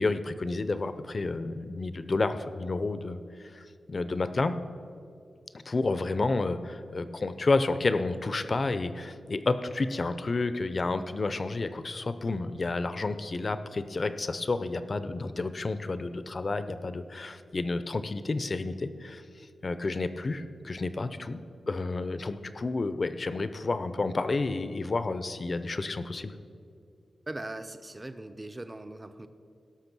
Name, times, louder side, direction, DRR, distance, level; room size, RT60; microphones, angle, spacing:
voice 1, 0.0-4.6 5.7-19.2 19.6-26.3, left 3 dB, 35° left, 12 dB, 0.5 m, -30 dB
voice 2, 27.3-29.3, right 1 dB, 15° right, 10 dB, 0.5 m, -40 dB
17.0 x 6.1 x 6.1 m, 2.5 s
wide cardioid pair, 160°, 0 cm